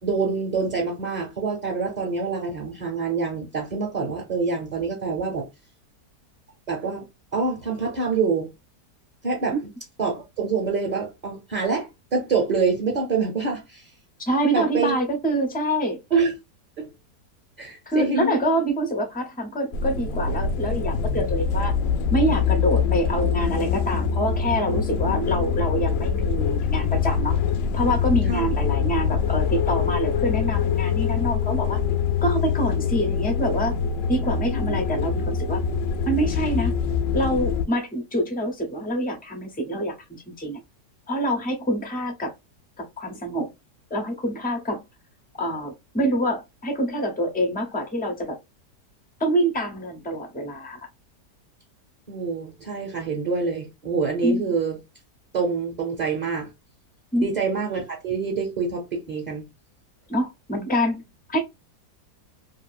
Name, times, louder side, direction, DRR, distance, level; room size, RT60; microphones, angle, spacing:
voice 1, 0.0-5.5 6.7-7.0 7.3-8.5 9.2-9.5 10.0-13.9 14.5-15.0 16.1-16.3 16.8-16.9 17.6-18.3 25.1-25.3 28.3-28.5 34.4-34.8 52.1-54.8 55.3-56.5 57.2-59.4, right 4 dB, 35° right, 0.8 m, -26 dB
voice 2, 14.2-16.0 17.9-21.7 22.1-27.4 27.7-31.8 32.2-33.8 34.1-35.6 36.1-36.7 37.1-39.9 40.3-40.6 41.1-42.3 42.8-43.5 43.9-44.8 45.4-48.4 49.2-50.8 54.2-54.4 57.1-57.3 60.1-61.0 61.3-61.4, right 1 dB, 15° left, 0.3 m, -26 dB
sound 1, 19.7-37.6, left 6 dB, 70° left, 0.8 m, -24 dB
2.7 x 2.6 x 2.3 m
omnidirectional pair, 1.8 m